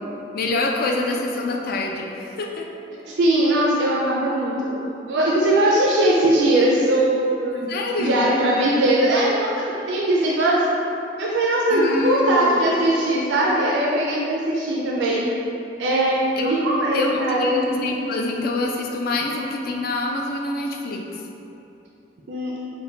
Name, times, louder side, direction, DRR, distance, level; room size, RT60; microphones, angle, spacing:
voice 1, 0.3-2.7 7.7-8.2 11.7-12.6 16.4-16.7 16.9-21.0, left 2 dB, 55° left, 1 dB, 0.4 m, -25 dB
voice 2, 3.1-7.7 8.0-10.6 11.2-15.2 15.8-17.6 22.3-22.5, right 1 dB, 90° right, -4 dB, 0.5 m, -20 dB
4.5 x 2.2 x 3.8 m, 2.8 s
head